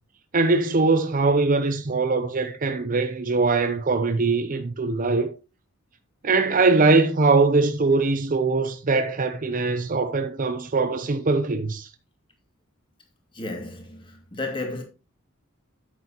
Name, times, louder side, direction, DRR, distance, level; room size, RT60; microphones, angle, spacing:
voice 1, 0.3-5.3 6.2-11.9, right 3 dB, 40° right, 0.7 m, -22 dB
voice 2, 13.3-14.8, left 2 dB, 25° left, 2.3 m, -33 dB
9.3 x 8.1 x 3.0 m
head